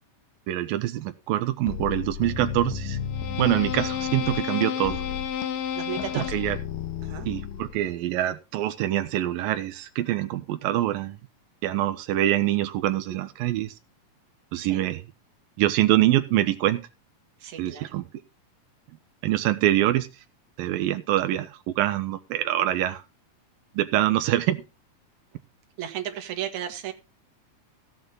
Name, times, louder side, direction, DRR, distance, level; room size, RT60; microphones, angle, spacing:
voice 1, 0.5-3.0 3.4-5.0 6.2-6.6 7.3-11.2 11.6-13.7 14.5-15.0 15.6-16.8 17.6-18.1 19.2-20.1 20.6-23.0 23.8-24.6, right 14 dB, 90° right, 9 dB, 2.7 m, -25 dB
sound 1, 1.7-7.9, left 8 dB, 75° left, 2.7 m, -31 dB
voice 2, 5.7-6.3 7.0-7.3 14.6-14.8 17.4-18.0 25.8-26.9, right 10 dB, 60° right, 4 dB, 3.0 m, -34 dB
15.5 x 8.6 x 4.0 m, 0.28 s
omnidirectional pair, 4.0 m